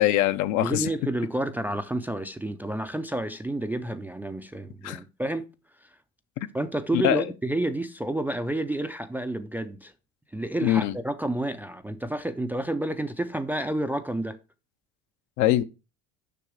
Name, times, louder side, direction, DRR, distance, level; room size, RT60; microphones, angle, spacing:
voice 1, 0.0-0.9 4.8-5.0 7.0-7.2 10.6-10.9 15.4-15.6, left 13 dB, 65° left, 0.7 m, -22 dB
voice 2, 0.6-5.5 5.8-5.9 6.5-9.9 10.3-14.4, right 1 dB, 5° right, 0.3 m, -30 dB
6.9 x 5.9 x 4.7 m
cardioid pair, 135°, 31 cm